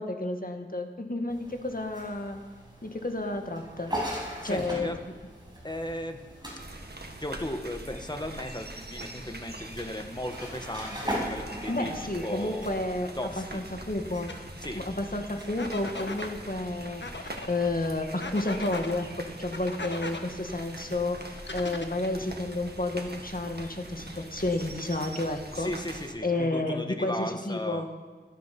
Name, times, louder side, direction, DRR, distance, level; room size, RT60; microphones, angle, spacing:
voice 1, 0.0-2.4 2.8-3.9 4.4-5.0 11.7-13.1 13.4-14.3 14.7-25.7 26.2-27.9, left 2 dB, 45° left, 4 dB, 1.9 m, -31 dB
sound 1, 1.3-17.3, equal, 20° right, 6.1 m, -41 dB
voice 2, 4.4-5.0 5.6-6.2 7.2-12.8 13.2-13.6 14.6-14.8 25.5-27.9, left 1 dB, 20° left, 6 dB, 1.5 m, -36 dB
sound 2, 6.6-26.1, right 2 dB, 55° right, 1.9 m, -43 dB
sound 3, 14.3-14.4 15.6-16.3 17.0-17.5 18.2-18.9 19.5-20.2 21.4-22.2, left 3 dB, 65° left, 1.5 m, -38 dB
18.0 x 13.5 x 6.1 m, 1.5 s
wide cardioid pair, 55°, 20 cm